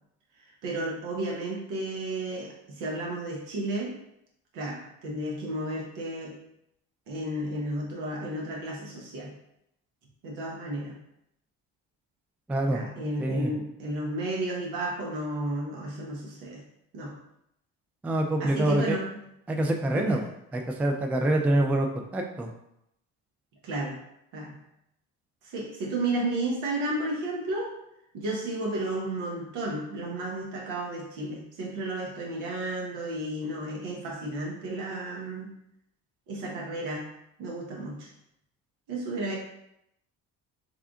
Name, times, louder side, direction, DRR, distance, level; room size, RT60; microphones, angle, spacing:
voice 1, 0.6-3.9 4.5-6.4 7.1-9.3 10.2-11.0 12.7-16.6 16.9-17.1 18.4-19.2 19.9-20.2 23.6-24.0 24.3-24.6 25.4-27.7 28.1-35.5 36.3-37.1 37.4-38.1 38.9-39.4, right 1 dB, 75° right, -1 dB, 1.1 m, -32 dB
voice 2, 12.5-12.8 13.2-13.5 18.0-19.0 19.5-20.2 20.5-21.9 22.1-22.5, right 1 dB, 5° right, 3 dB, 0.3 m, -25 dB
3.5 x 2.4 x 3.5 m, 0.79 s
supercardioid pair, 75°, 40 cm